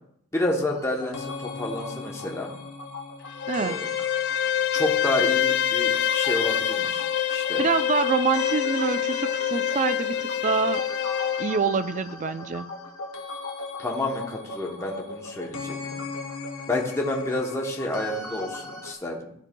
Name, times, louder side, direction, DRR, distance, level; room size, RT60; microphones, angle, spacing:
voice 1, 0.3-2.5 3.6-3.8 4.7-7.6 13.8-16.0 16.7-19.3, left 1 dB, 15° left, -1 dB, 0.8 m, -29 dB
sound 1, 0.7-18.9, left 3 dB, 75° left, 1.0 m, -38 dB
Bowed string instrument, 3.3-11.6, left 10 dB, 50° left, 0.3 m, -26 dB
voice 2, 3.5-3.8 7.6-10.8 11.4-12.7, right 5 dB, 35° right, 12 dB, 0.3 m, -26 dB
12.5 x 4.5 x 2.2 m, 0.71 s
head